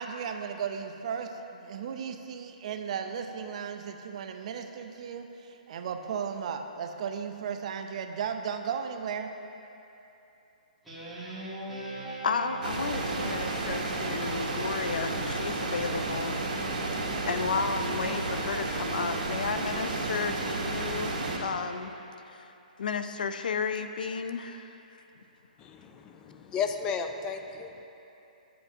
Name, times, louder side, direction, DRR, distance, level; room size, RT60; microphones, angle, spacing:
voice 1, 0.0-9.3, right 7 dB, 50° right, 6 dB, 0.5 m, -35 dB
Guitar, 10.8-15.6, right 2 dB, 5° right, 1.6 m, -41 dB
voice 2, 12.2-16.6 17.3-21.9 22.8-24.8, left 5 dB, 80° left, 9 dB, 0.4 m, -33 dB
sound 1, 12.6-21.4, right 2 dB, 75° right, 1.6 m, -32 dB
voice 3, 25.6-27.7, left 6 dB, 15° left, 6 dB, 0.3 m, -34 dB
11.0 x 7.6 x 2.7 m, 2.9 s
hypercardioid pair, 155°, 5 cm